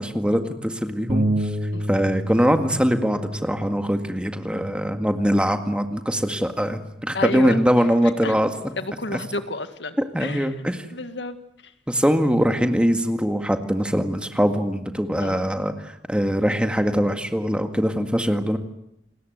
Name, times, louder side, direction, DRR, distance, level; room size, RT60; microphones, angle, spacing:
voice 1, 0.0-1.5 1.9-8.5 10.1-10.8 11.9-18.6, equal, 5° right, 6 dB, 1.9 m, -22 dB
Bass guitar, 1.1-7.3, right 1 dB, 50° right, 3.7 m, -31 dB
voice 2, 7.1-7.9 8.2-8.4 8.8-10.6 10.9-11.4 11.6-11.7 15.2-15.5, left 3 dB, 80° left, 9 dB, 2.0 m, -31 dB
29.5 x 19.5 x 8.1 m, 0.81 s
head